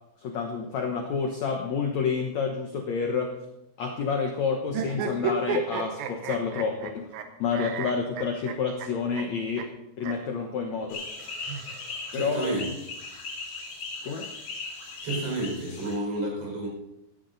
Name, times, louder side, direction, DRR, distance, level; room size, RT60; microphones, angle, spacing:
voice 1, 0.2-3.3 3.8-7.1 7.4-9.7 10.0-11.1 12.1-12.5 14.0-14.3, left 5 dB, 75° left, 3 dB, 1.6 m, -29 dB
sound 1, 4.7-7.2 7.5-8.9 9.2-9.3 9.6-9.7 10.0-10.1 11.2-12.2, right 5 dB, 70° right, 2.6 m, -32 dB
sound 2, 10.9-16.0, left 3 dB, 60° left, 4.5 m, -38 dB
voice 2, 12.1-12.6 15.0-16.7, right 1 dB, 35° right, -2 dB, 5.8 m, -30 dB
16.0 x 11.5 x 4.0 m, 0.86 s
omnidirectional pair, 4.9 m